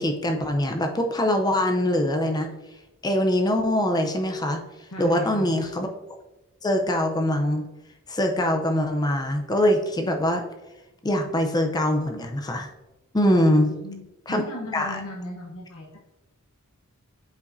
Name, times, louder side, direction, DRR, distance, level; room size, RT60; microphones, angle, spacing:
voice 1, 0.0-2.5 3.0-4.6 5.0-5.9 6.6-7.7 8.1-10.4 11.0-12.7 13.1-13.7 14.3-14.4 14.7-15.0, left 1 dB, 20° left, 4 dB, 0.5 m, -23 dB
voice 2, 4.9-5.6 13.5-14.0 14.3-16.0, left 2 dB, 90° left, -3 dB, 1.1 m, -36 dB
8.3 x 5.0 x 2.6 m, 1.0 s
head